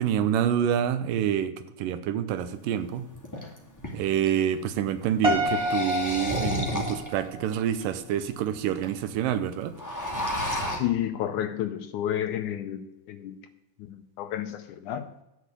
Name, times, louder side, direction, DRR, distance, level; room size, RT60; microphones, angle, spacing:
voice 1, 0.0-3.1 3.9-9.8, right 10 dB, 80° right, 12 dB, 2.4 m, -27 dB
sound 1, 2.5-2.6 3.1-4.3 5.2-7.2 7.8-7.9 8.1-8.2 8.4-8.9 9.2-9.3 9.6-10.8, left 1 dB, 5° left, 1.6 m, -32 dB
Piano, 5.2-7.5, left 2 dB, 35° right, 0.5 m, -28 dB
voice 2, 10.7-12.8 13.1-13.4 13.8-15.1, left 11 dB, 80° left, 9 dB, 1.9 m, -30 dB
12.0 x 6.6 x 8.3 m, 0.93 s
omnidirectional pair, 4.0 m